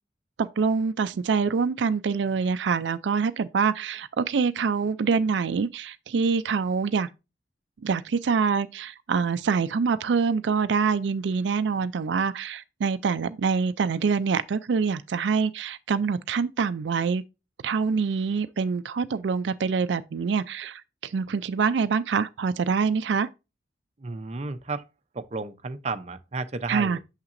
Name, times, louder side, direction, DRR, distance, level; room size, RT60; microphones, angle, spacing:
voice 1, 0.4-7.1 7.8-17.2 17.6-23.3 26.7-27.0, right 5 dB, 85° right, 0.4 m, -25 dB
voice 2, 24.0-24.8 25.1-27.0, right 3 dB, 40° right, 0.6 m, -32 dB
6.6 x 5.8 x 2.5 m
head